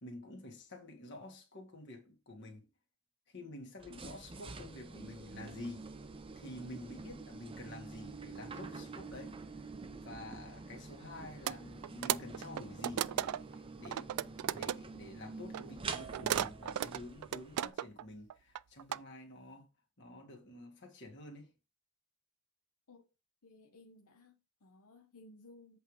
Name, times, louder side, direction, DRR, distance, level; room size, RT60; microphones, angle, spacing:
voice 1, 0.0-2.7 3.3-5.9 6.4-9.4 9.9-19.7 20.0-21.5, left 1 dB, 50° left, 1.9 m, -49 dB
sound 1, 3.8-17.7, right 4 dB, 25° right, 0.5 m, -47 dB
sound 2, 11.5-11.6 11.8-13.6 13.9-14.8 15.5-18.0 18.3-19.0, right 11 dB, 80° right, 0.3 m, -35 dB
voice 2, 23.4-25.8, left 2 dB, 85° left, 0.9 m, -58 dB
8.0 x 3.5 x 4.8 m
head